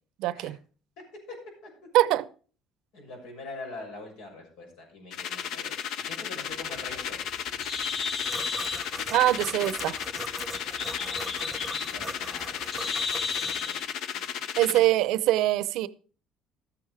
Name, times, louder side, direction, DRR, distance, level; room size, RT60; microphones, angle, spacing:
voice 1, 0.2-0.6 1.9-2.3 9.1-10.0 14.6-15.9, right 15 dB, 75° right, 0.7 m, -23 dB
voice 2, 2.9-5.8 6.1-7.3 10.9-13.8 14.2-14.8, left 2 dB, 85° left, 6.8 m, -44 dB
sound 1, 5.1-14.9, left 8 dB, 70° left, 0.9 m, -34 dB
Bird, 6.6-13.8, left 4 dB, 50° left, 2.7 m, -35 dB
sound 2, 8.2-13.5, right 2 dB, 5° right, 1.0 m, -41 dB
13.0 x 9.0 x 4.8 m
cardioid pair, 110°, 0 cm